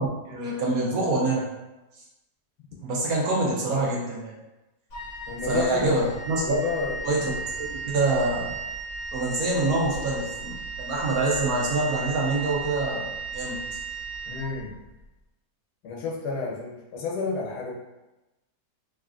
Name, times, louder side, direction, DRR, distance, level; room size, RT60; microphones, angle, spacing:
voice 1, 0.0-1.4 2.8-4.3 5.4-6.6 7.0-8.5 9.1-13.6, right 2 dB, 70° right, -4 dB, 1.1 m, -26 dB
Wind instrument woodwind instrument, 4.9-15.0, right 4 dB, 55° left, 1.1 m, -35 dB
voice 2, 5.3-6.0 6.4-7.0 14.2-14.7 15.8-17.7, left 4 dB, 85° left, -2 dB, 1.2 m, -30 dB
3.2 x 2.5 x 2.4 m, 1.0 s
omnidirectional pair, 1.7 m